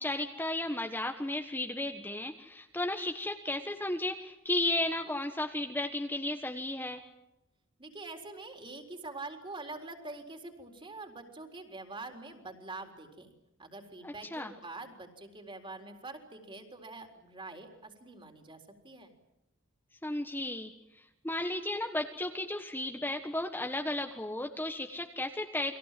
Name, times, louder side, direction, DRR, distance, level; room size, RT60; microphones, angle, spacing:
voice 1, 0.0-7.0 14.0-14.5 20.0-25.8, left 1 dB, 10° left, 4 dB, 1.4 m, -34 dB
voice 2, 7.8-13.3 13.6-19.1, right 3 dB, 25° right, 4 dB, 4.1 m, -45 dB
30.0 x 22.5 x 7.7 m, 0.92 s
head